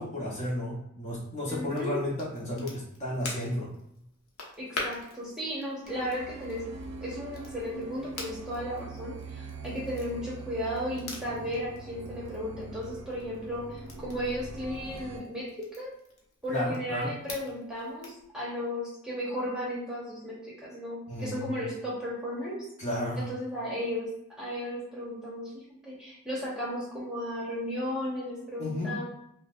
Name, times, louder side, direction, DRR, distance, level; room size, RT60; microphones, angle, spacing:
voice 1, 0.0-3.7 16.5-17.1 21.1-21.6 22.8-23.3 28.6-28.9, left 1 dB, 30° left, -5 dB, 0.8 m, -33 dB
voice 2, 1.5-2.0 4.6-6.6 7.0-15.9 16.4-22.7 23.2-24.1 24.4-29.0, equal, 5° right, -6 dB, 1.0 m, -35 dB
Crackle, 1.6-18.3, left 2 dB, 70° left, 0.8 m, -46 dB
sound 1, 5.8-15.2, right 3 dB, 60° right, 0.5 m, -43 dB
5.4 x 2.1 x 2.4 m, 0.77 s
head